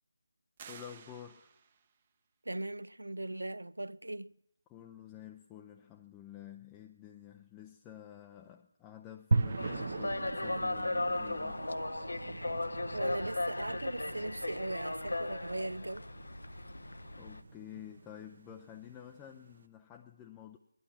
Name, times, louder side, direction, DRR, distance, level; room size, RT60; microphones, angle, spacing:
sound 1, 0.6-2.0, right 7 dB, 25° right, 0.8 m, -53 dB
voice 1, 0.7-1.5 4.7-11.6 17.2-20.6, left 10 dB, 10° left, 0.5 m, -50 dB
voice 2, 2.5-4.3 12.9-16.1, right 1 dB, 80° right, 0.4 m, -39 dB
sound 2, 9.3-19.6, right 3 dB, 50° right, 1.0 m, -39 dB
sound 3, 9.6-17.4, left 2 dB, 75° left, 0.7 m, -37 dB
18.5 x 11.5 x 5.8 m
figure-of-eight pair, 160°, 0 cm